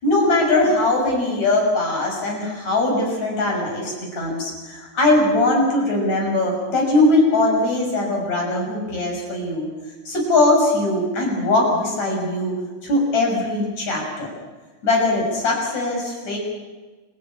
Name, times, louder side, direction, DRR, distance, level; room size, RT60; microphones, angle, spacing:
voice 1, 0.0-9.7 10.1-12.6 12.8-14.3 14.8-16.4, left 2 dB, 55° left, 0 dB, 7.8 m, -20 dB
28.5 x 15.5 x 8.8 m, 1.3 s
omnidirectional pair, 4.0 m